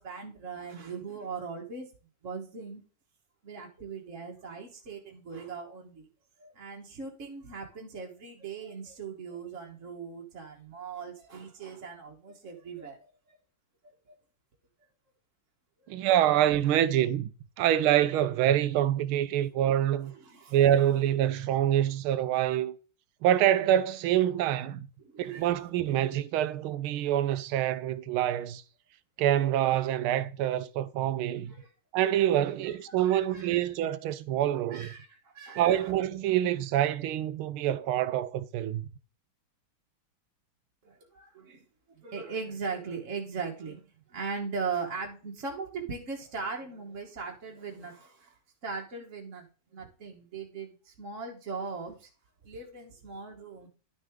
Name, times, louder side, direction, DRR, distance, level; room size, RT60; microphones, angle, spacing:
voice 1, 0.0-1.9 2.2-2.8 3.4-6.1 6.4-13.0 13.3-13.4 13.8-13.9 15.8-16.0 20.0-20.6 25.0-25.5 31.5-31.7 32.6-33.7 34.7-35.9 40.8-43.8 44.1-49.5 49.7-52.1 52.4-53.7, right 5 dB, 40° right, 1.5 m, -39 dB
voice 2, 15.9-17.3 17.6-20.1 20.5-22.7 23.2-24.9 25.2-28.6 29.2-31.5 31.9-34.9 35.6-38.9, right 11 dB, 90° right, 1.5 m, -26 dB
11.0 x 6.3 x 3.6 m
omnidirectional pair, 2.3 m